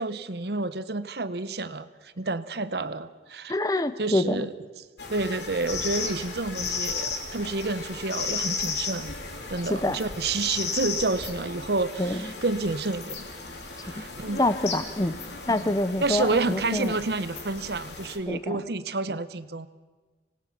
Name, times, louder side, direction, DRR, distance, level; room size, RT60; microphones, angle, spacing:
voice 1, 0.0-3.5 4.0-4.5 5.1-9.1 9.5-13.3 13.8-14.4 15.5-15.7 16.0-19.7, right 3 dB, 65° right, 13 dB, 0.9 m, -29 dB
voice 2, 3.5-4.5 9.7-10.0 12.0-12.3 13.9-14.0 14.4-15.1 15.5-17.0 18.3-18.7, left 1 dB, 20° left, 13 dB, 0.7 m, -26 dB
sound 1, 5.0-18.2, left 4 dB, 75° left, 3.2 m, -35 dB
25.5 x 19.0 x 5.9 m, 1.3 s
head